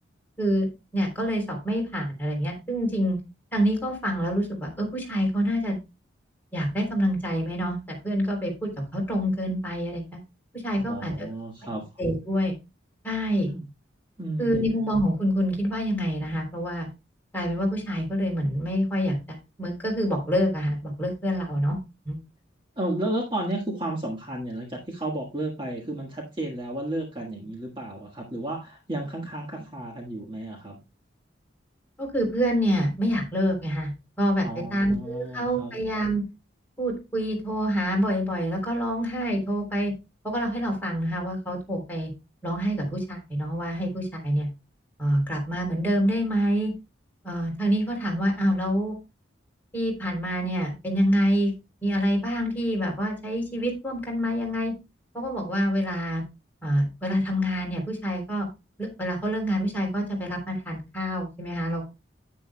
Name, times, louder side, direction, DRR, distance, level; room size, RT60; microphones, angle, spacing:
voice 1, 0.4-3.2 3.5-5.8 6.5-10.2 10.5-11.3 12.0-12.5 13.0-13.5 14.4-16.9 17.3-21.8 22.0-22.2 32.0-33.9 34.2-36.2 36.8-39.9 40.2-42.1 42.4-44.5 45.0-46.7 47.2-49.0 49.7-51.5 51.8-54.7 55.1-56.2 56.6-58.5 58.8-61.9, equal, 10° left, -2 dB, 3.3 m, -26 dB
voice 2, 10.8-11.8 13.5-13.7 14.2-14.7 22.7-30.8 34.4-35.8, right 1 dB, 25° right, 0 dB, 1.5 m, -32 dB
9.9 x 9.2 x 2.2 m, 0.25 s
head